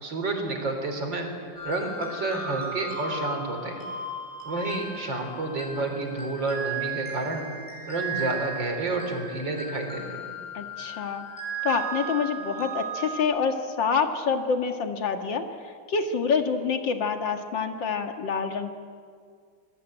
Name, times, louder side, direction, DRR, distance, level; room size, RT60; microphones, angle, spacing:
voice 1, 0.0-1.3 1.6-3.8 4.4-7.5 7.9-10.3, right 2 dB, 80° right, 4 dB, 4.5 m, -30 dB
sound 1, 1.6-13.2, right 3 dB, 10° left, 7.8 m, -36 dB
voice 2, 10.5-11.3 11.6-15.5 15.9-18.8, left 5 dB, 80° left, 6 dB, 2.5 m, -27 dB
26.5 x 20.0 x 9.0 m, 2.1 s
omnidirectional pair, 2.0 m